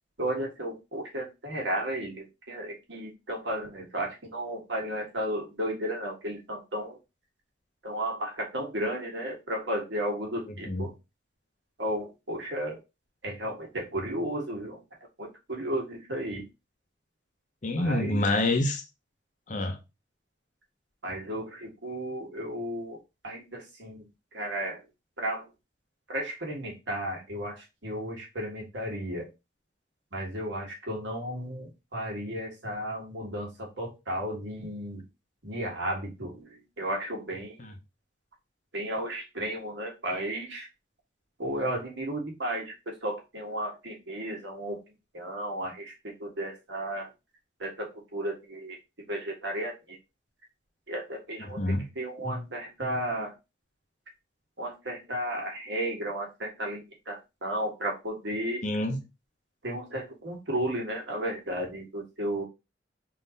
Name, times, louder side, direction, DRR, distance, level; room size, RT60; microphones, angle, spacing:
voice 1, 0.2-7.0 7.8-10.9 11.8-12.8 13.2-14.8 15.2-16.4 17.8-18.2 21.0-23.0 23.2-24.0 24.3-24.8 25.2-25.4 26.1-29.3 30.1-35.0 35.4-37.6 38.7-40.7 41.4-44.8 45.1-47.1 47.6-48.8 49.1-50.0 50.9-51.6 52.0-53.3 54.6-58.6 59.6-62.4, right 1 dB, 75° right, 1.5 m, -34 dB
voice 2, 10.5-10.9 17.6-18.8 19.5-19.8 37.6-37.7 51.4-51.9 58.6-59.0, left 2 dB, 40° left, 0.6 m, -27 dB
3.6 x 2.6 x 3.9 m
head